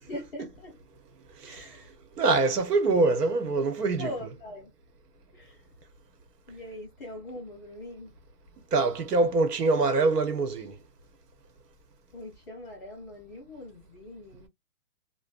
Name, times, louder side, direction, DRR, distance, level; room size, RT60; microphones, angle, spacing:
voice 1, 0.0-0.8 1.5-1.9 4.0-4.7 5.3-5.6 6.5-8.1 12.1-14.5, left 1 dB, 10° left, 0.7 m, -41 dB
voice 2, 1.4-1.7 2.2-4.1 8.7-10.8, right 3 dB, 80° right, 1.1 m, -24 dB
2.6 x 2.1 x 2.4 m
hypercardioid pair, 175°, 47 cm